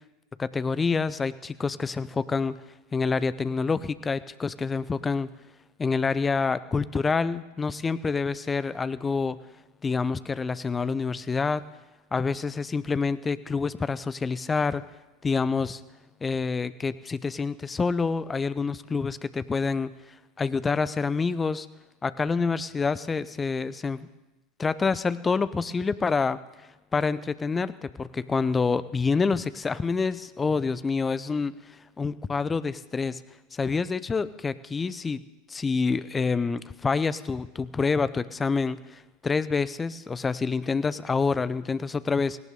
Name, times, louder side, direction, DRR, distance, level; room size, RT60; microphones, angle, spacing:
voice 1, 0.4-2.6 2.9-5.3 5.8-9.4 9.8-11.6 12.1-14.8 15.2-15.8 16.2-19.9 20.4-21.7 22.0-24.1 24.6-26.4 26.9-31.6 32.0-33.2 33.5-35.2 35.5-42.4, left 4 dB, 20° left, 16 dB, 0.7 m, -27 dB
18.0 x 17.5 x 3.8 m, 1.1 s
figure-of-eight pair, 80°, 0 cm